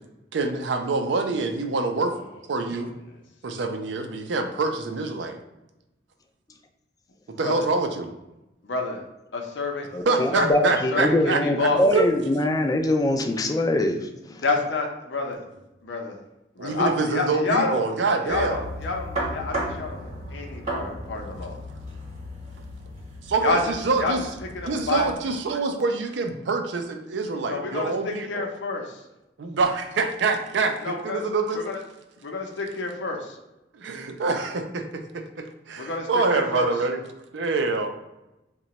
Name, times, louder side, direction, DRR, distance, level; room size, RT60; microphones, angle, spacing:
voice 1, 0.3-2.1 2.5-2.9 3.4-5.4 7.4-8.1 10.1-12.1 16.6-18.6 23.2-24.3 24.6-28.5 29.4-31.6 33.7-37.0 37.3-37.9, right 3 dB, 75° right, 6 dB, 0.4 m, -26 dB
voice 2, 8.6-9.0 9.3-11.8 14.4-15.4 15.8-16.2 16.6-17.8 18.2-21.6 23.4-23.6 24.0-24.1 24.5-25.2 27.5-29.0 30.8-31.2 31.5-31.8 32.2-33.4 35.8-36.7, left 3 dB, 80° left, 2 dB, 0.6 m, -28 dB
voice 3, 9.9-14.4, left 1 dB, 20° left, 5 dB, 0.3 m, -23 dB
sound 1, 18.3-25.2, right 1 dB, 35° right, 1.0 m, -35 dB
2.9 x 2.2 x 4.0 m, 0.96 s
head